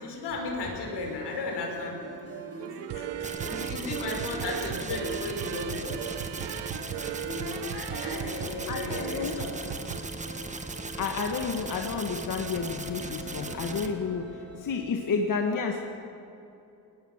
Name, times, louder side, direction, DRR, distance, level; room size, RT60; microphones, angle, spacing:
voice 1, 0.0-2.0 3.4-6.1 7.3-9.5, left 3 dB, 80° left, 1 dB, 5.6 m, -35 dB
sound 1, 0.6-15.1, right 1 dB, 35° right, 3.6 m, -43 dB
sound 2, 2.6-10.0, right 12 dB, 90° right, 0.9 m, -37 dB
voice 2, 2.9-3.5 7.9-8.1 8.7-9.4 11.0-15.8, left 5 dB, 50° left, 3 dB, 1.8 m, -31 dB
sound 3, 3.2-13.9, right 3 dB, 20° right, 1.5 m, -38 dB
21.0 x 20.0 x 7.4 m, 2.8 s
cardioid pair, 130°, 40 cm